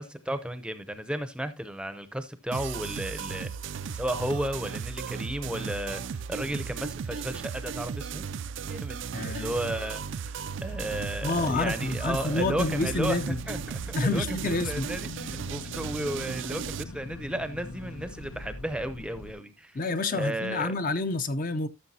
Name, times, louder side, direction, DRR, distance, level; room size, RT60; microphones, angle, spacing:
voice 1, 0.0-8.3 8.7-19.8 20.1-20.7, right 1 dB, 5° right, 0.6 m, -34 dB
sound 1, 2.5-16.8, right 6 dB, 55° right, 0.4 m, -36 dB
voice 2, 9.1-9.6 11.2-13.4 13.9-14.9 19.7-21.7, left 3 dB, 40° left, 0.6 m, -28 dB
sound 2, 10.7-19.3, left 2 dB, 85° left, 0.9 m, -43 dB
13.5 x 6.7 x 2.8 m
head